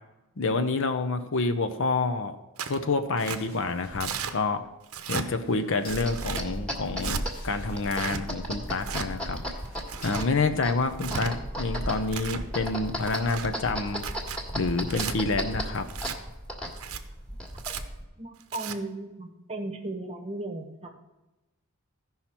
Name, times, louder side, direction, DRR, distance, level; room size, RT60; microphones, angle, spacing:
voice 1, 0.4-2.4 2.7-4.6 5.1-9.4 10.0-14.0 14.5-15.9, left 3 dB, 60° left, 9 dB, 0.7 m, -28 dB
Tearing, 2.6-2.8 3.2-3.4 4.0-4.3 4.9-5.3 5.9-6.4 7.0-7.2 7.8-8.2 8.8-9.1 9.7-10.3 10.9-11.3 11.9-12.4 13.0-13.5 14.0-14.4 14.9-15.1 15.9-16.2 16.7-17.0 17.6-17.8 18.4-18.8, right 7 dB, 80° right, 0.7 m, -35 dB
sound 1, 2.9-10.9, left 1 dB, 80° left, 2.8 m, -50 dB
sound 2, 5.9-18.0, equal, 5° left, 1.5 m, -35 dB
voice 2, 18.2-20.9, right 2 dB, 30° right, 5 dB, 1.0 m, -36 dB
15.0 x 5.6 x 4.4 m, 1.0 s
head